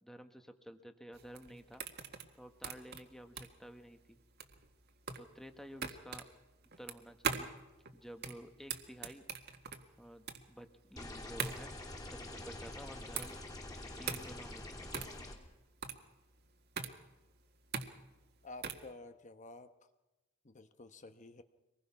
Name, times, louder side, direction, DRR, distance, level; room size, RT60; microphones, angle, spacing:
voice 1, 0.0-1.8 2.3-4.2 5.2-6.2 6.8-7.5 7.9-9.2 10.0-11.7 12.0-13.4 14.0-15.1, equal, ahead, 7 dB, 1.2 m, -52 dB
sound 1, 1.1-18.9, right 6 dB, 50° right, 1.8 m, -42 dB
sound 2, 11.0-15.4, left 1 dB, 20° left, 3.0 m, -46 dB
voice 2, 18.4-19.7 20.4-21.4, left 2 dB, 35° left, 9 dB, 1.0 m, -51 dB
25.0 x 20.5 x 5.8 m, 1.0 s
head